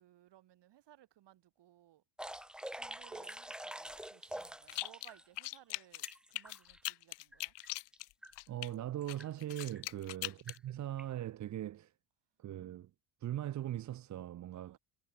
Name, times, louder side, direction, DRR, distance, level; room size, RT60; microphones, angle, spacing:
voice 1, 0.0-2.0 2.7-7.5 10.1-10.4 14.5-14.8, right 13 dB, 60° right, 4.9 m, -62 dB
sound 1, 2.2-5.2 5.6-6.8 7.3-7.4 7.6-8.0 8.2-8.3 9.0-9.3 9.6-9.8 10.5-10.6 11.0-11.1, right 1 dB, ahead, 0.6 m, -46 dB
sound 2, 4.7-5.1 5.4-8.7 9.1-10.6, left 20 dB, 60° left, 0.8 m, -41 dB
voice 2, 8.5-11.9 12.4-12.9 13.2-14.8, right 12 dB, 40° right, 0.7 m, -40 dB
supercardioid pair, 85°, 48 cm